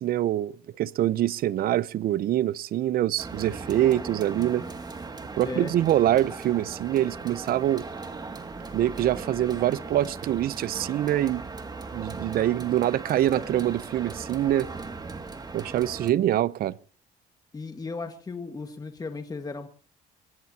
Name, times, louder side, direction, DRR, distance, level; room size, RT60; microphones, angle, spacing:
voice 1, 0.0-4.6 5.3-7.8 8.7-11.5 11.9-14.7 15.5-16.8, right 12 dB, 60° right, 0.7 m, -25 dB
sound 1, 3.2-16.1, right 3 dB, 25° right, 2.3 m, -38 dB
voice 2, 17.5-19.7, left 4 dB, 20° left, 1.8 m, -36 dB
23.0 x 20.5 x 2.9 m
cardioid pair, 110°, 17 cm